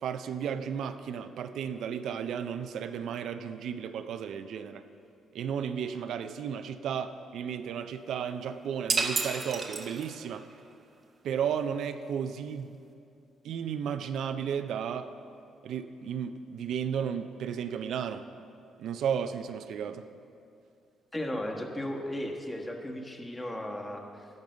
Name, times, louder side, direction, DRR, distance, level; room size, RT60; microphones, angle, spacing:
voice 1, 0.0-4.8 5.3-10.5 11.2-12.7 13.4-15.1 15.6-18.3 18.8-20.0, right 8 dB, 75° right, 9 dB, 0.4 m, -34 dB
sound 1, 8.9-10.4, right 4 dB, 40° right, 0.9 m, -31 dB
voice 2, 21.1-24.3, left 1 dB, 15° left, 2 dB, 1.2 m, -35 dB
11.0 x 5.3 x 7.8 m, 2.5 s
cardioid pair, 90°, 0 cm